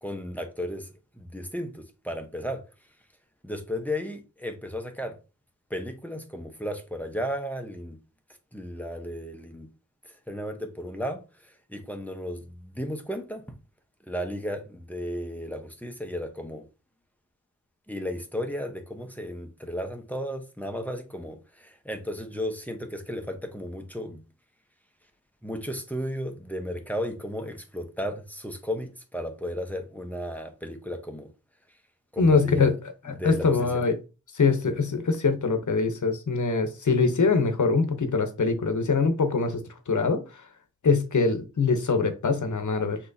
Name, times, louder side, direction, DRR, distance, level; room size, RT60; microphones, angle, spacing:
voice 1, 0.0-0.9 1.2-2.6 3.4-5.1 5.7-8.0 8.5-9.7 10.3-13.4 14.1-16.6 17.9-24.2 25.4-31.3 32.1-32.7 33.1-33.8, equal, 5° left, 0.9 m, -34 dB
voice 2, 32.2-32.7 33.2-34.0 34.4-39.5 39.9-40.2 40.8-43.0, left 4 dB, 70° left, 0.8 m, -23 dB
6.1 x 2.9 x 2.7 m
wide cardioid pair, 75°, 31 cm